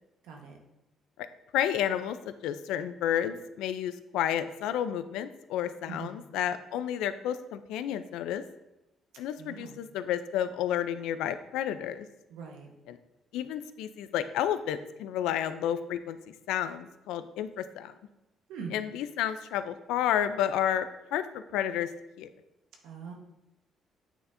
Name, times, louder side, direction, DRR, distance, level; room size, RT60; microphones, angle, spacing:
voice 1, 0.2-0.6 5.9-6.2 9.4-9.8 12.3-12.7 18.5-18.7 22.8-23.1, right 5 dB, 85° right, 1 dB, 1.1 m, -42 dB
voice 2, 1.5-8.4 9.2-12.1 12.9-13.0 13.3-17.9 18.7-21.9 22.2-22.3, left 10 dB, 90° left, 11 dB, 0.4 m, -31 dB
9.0 x 4.3 x 2.6 m, 0.92 s
cardioid pair, 90°, 0 cm